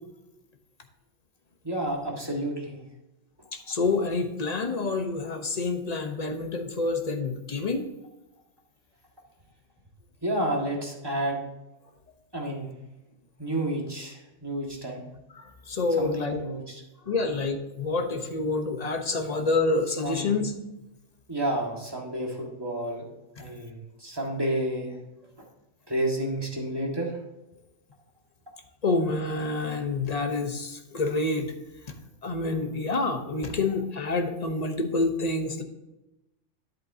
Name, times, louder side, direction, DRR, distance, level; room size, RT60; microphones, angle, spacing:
voice 1, 1.6-2.8 10.2-11.4 12.3-12.7 13.4-15.0 16.0-16.8 17.2-17.3 20.0-20.3 21.3-23.1 23.4-24.9 25.9-27.1, right 1 dB, 20° right, -1 dB, 1.8 m, -30 dB
voice 2, 3.5-7.9 15.3-16.4 17.1-20.5 28.8-31.5 31.9-32.0 32.2-35.6, left 3 dB, 35° left, 5 dB, 1.0 m, -28 dB
10.0 x 8.3 x 2.8 m, 0.98 s
omnidirectional pair, 1.3 m